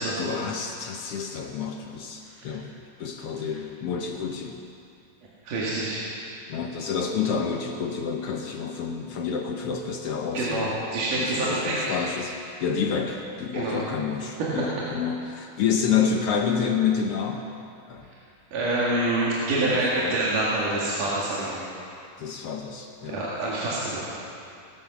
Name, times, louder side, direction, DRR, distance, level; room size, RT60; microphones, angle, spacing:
voice 1, 0.2-2.7 3.0-4.6 6.5-10.7 11.2-17.5 17.9-18.0 19.7-20.2 22.2-23.2, left 6 dB, 70° left, 2 dB, 1.5 m, -28 dB
voice 2, 2.2-2.6 3.3-3.5 5.4-6.0 10.3-12.0 13.5-13.8 18.5-21.6 23.1-24.1, right 2 dB, 75° right, -7 dB, 3.6 m, -26 dB
19.5 x 10.5 x 6.0 m, 2.5 s
omnidirectional pair, 3.7 m